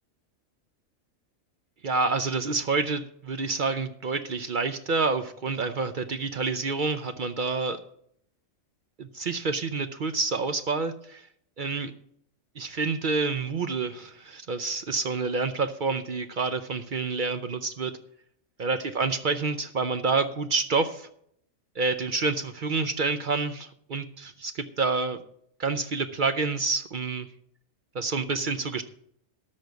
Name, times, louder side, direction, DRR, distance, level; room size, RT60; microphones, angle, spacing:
voice 1, 1.8-7.8 9.0-11.3 11.6-11.9 12.6-17.9 18.6-21.1 21.8-25.2 25.6-27.3 27.9-28.8, right 4 dB, 50° right, 10 dB, 0.6 m, -28 dB
13.0 x 5.2 x 8.1 m, 0.70 s
omnidirectional pair, 1.4 m